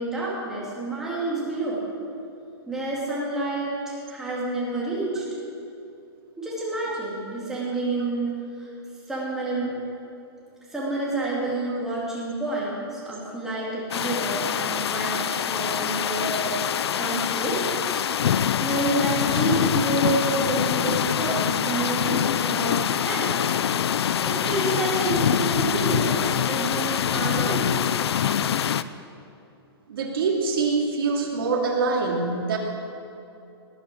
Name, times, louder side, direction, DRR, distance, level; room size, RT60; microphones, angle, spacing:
voice 1, 0.0-1.8 2.7-5.2 6.4-8.7 9.1-9.8 10.7-18.0 18.4-23.3 24.2-27.7, right 2 dB, 5° right, -7 dB, 3.0 m, -29 dB
sound 1, 13.9-28.8, left 9 dB, 75° left, 0.6 m, -25 dB
voice 2, 29.9-32.6, right 4 dB, 60° right, 0 dB, 2.7 m, -24 dB
18.5 x 9.3 x 6.4 m, 2.7 s
hypercardioid pair, 165°, 14 cm